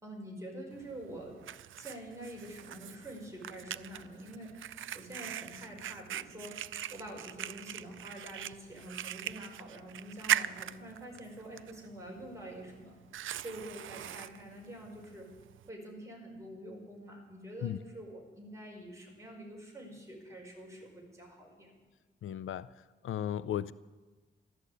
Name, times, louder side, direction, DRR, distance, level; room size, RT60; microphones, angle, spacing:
voice 1, 0.0-1.4 1.7-4.6 4.9-6.6 6.9-12.9 13.4-15.3 15.7-21.8, right 1 dB, 15° right, -1 dB, 4.7 m, -46 dB
Fire, 0.7-15.7, right 11 dB, 80° right, 0.4 m, -41 dB
voice 2, 22.2-22.7 23.0-23.7, left 10 dB, 85° left, 17 dB, 0.5 m, -35 dB
13.5 x 12.0 x 8.3 m, 1.3 s
wide cardioid pair, 125°, 20 cm